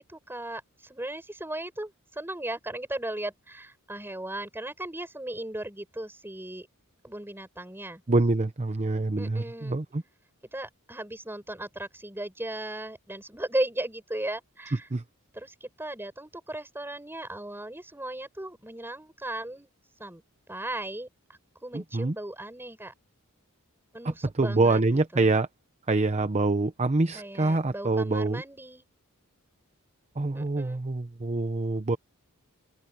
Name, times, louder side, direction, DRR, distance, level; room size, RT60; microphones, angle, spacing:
voice 1, 0.0-6.7 7.0-8.0 9.2-9.8 10.5-14.9 15.3-19.7 20.0-22.9 23.9-25.3 27.1-28.8 30.3-30.8, right 1 dB, 10° right, 6.8 m, -37 dB
voice 2, 8.1-10.0 14.9-15.0 21.7-22.1 24.0-25.5 25.9-28.4 30.2-32.0, right 2 dB, 30° right, 0.7 m, -25 dB
head